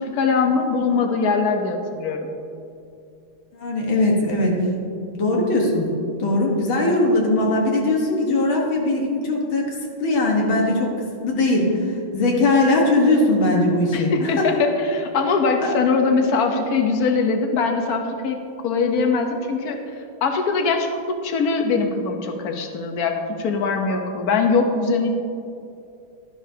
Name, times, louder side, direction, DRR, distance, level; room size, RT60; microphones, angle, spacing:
voice 1, 0.0-2.3 13.9-18.4 18.6-19.8 20.2-25.1, left 4 dB, 55° left, 4 dB, 1.2 m, -22 dB
voice 2, 3.5-4.6 5.1-5.8 6.2-10.9 11.2-14.5 15.6-15.7, left 2 dB, 75° left, -1 dB, 2.2 m, -20 dB
12.0 x 11.0 x 2.8 m, 2.6 s
omnidirectional pair, 2.3 m